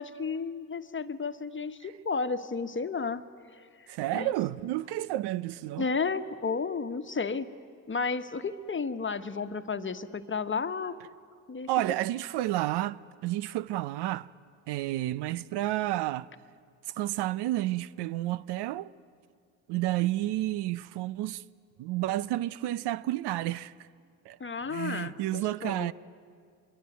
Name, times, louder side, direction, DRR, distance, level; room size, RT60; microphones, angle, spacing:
voice 1, 0.0-3.2 3.5-3.9 4.1-4.3 5.8-7.5 7.9-11.0 11.5-11.7 24.4-25.9, left 5 dB, 30° left, 1.3 m, -32 dB
voice 2, 3.9-5.9 11.7-14.3 14.7-16.3 17.0-18.9 19.7-21.4 21.8-23.9 24.2-24.4 24.7-25.9, right 15 dB, 70° right, 0.8 m, -31 dB
25.0 x 23.0 x 9.3 m
hypercardioid pair, 55°, 42 cm